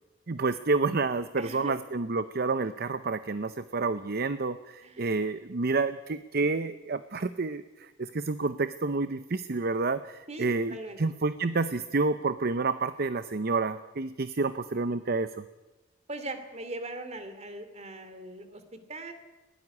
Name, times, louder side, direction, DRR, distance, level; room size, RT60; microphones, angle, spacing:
voice 1, 0.3-15.3, right 3 dB, 50° right, 12 dB, 0.7 m, -29 dB
voice 2, 1.4-1.8 4.0-4.1 4.8-5.2 10.3-11.0 16.1-19.1, right 2 dB, 35° right, 10 dB, 2.8 m, -40 dB
20.5 x 18.0 x 9.9 m, 1.1 s
head